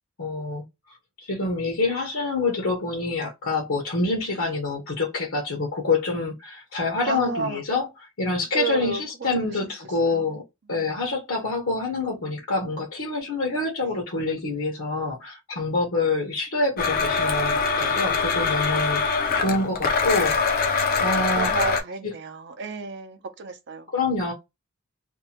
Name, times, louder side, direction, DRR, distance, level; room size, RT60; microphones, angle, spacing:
voice 1, 0.2-0.6 1.2-10.4 10.7-20.7 21.0-21.5 22.0-22.1 23.9-24.3, left 3 dB, 75° left, 0.9 m, -26 dB
voice 2, 7.0-7.6 8.5-9.5 10.1-10.3 10.7-10.9 19.3-19.7 21.4-23.9, right 4 dB, 55° right, 0.6 m, -32 dB
Domestic sounds home sounds, 16.8-21.8, left 5 dB, 45° left, 0.4 m, -23 dB
2.6 x 2.1 x 2.8 m
head